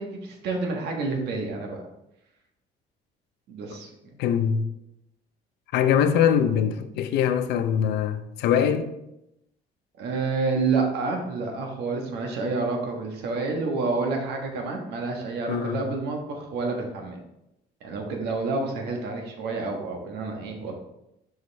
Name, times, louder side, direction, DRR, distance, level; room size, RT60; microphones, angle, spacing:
voice 1, 0.0-1.8 3.5-4.2 10.0-17.2 17.8-20.7, right 3 dB, 80° right, 1.4 m, -29 dB
voice 2, 4.2-4.6 5.7-8.9 15.5-15.8, left 8 dB, 80° left, 0.6 m, -22 dB
6.3 x 4.9 x 3.4 m
cardioid pair, 110°, 17 cm